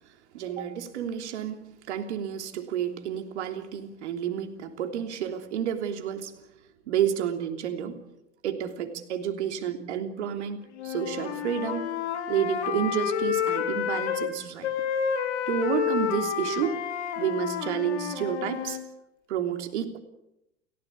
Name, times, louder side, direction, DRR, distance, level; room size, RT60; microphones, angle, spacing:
voice 1, 0.3-1.6 1.9-6.4 6.9-8.0 8.4-11.9 12.3-14.7 15.5-16.8 17.2-18.8 19.3-20.0, right 9 dB, 70° right, 6 dB, 3.3 m, -30 dB
Wind instrument woodwind instrument, 10.8-14.3 14.6-18.8, left 8 dB, 70° left, 4.1 m, -30 dB
30.0 x 16.5 x 8.7 m, 0.86 s
figure-of-eight pair, 75°, 35 cm